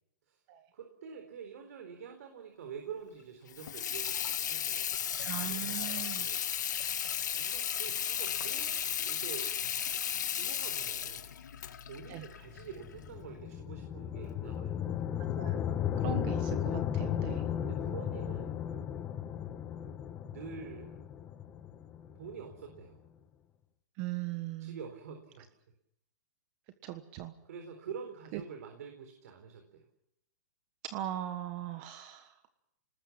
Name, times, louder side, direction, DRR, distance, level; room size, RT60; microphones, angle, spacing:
voice 1, 0.7-4.9 5.4-6.6 7.3-9.5 10.4-11.3 11.9-15.1 16.7-16.8 17.7-18.6 20.2-21.0 22.2-23.0 24.6-25.4 27.4-29.8, right 7 dB, 60° right, 4 dB, 4.0 m, -47 dB
Water tap faucet / Sink (filling or washing), 3.5-13.1, left 9 dB, 90° left, 2.1 m, -35 dB
voice 2, 5.2-6.3 12.1-12.2 15.4-15.6 16.0-17.4 24.0-24.8 26.8-27.3 28.3-28.4 30.8-32.3, right 13 dB, 30° right, 9 dB, 1.3 m, -39 dB
sound 1, 12.5-22.8, left 9 dB, 20° left, 1.2 m, -35 dB
28.0 x 19.5 x 7.4 m, 0.81 s
hypercardioid pair, 165°, 9 cm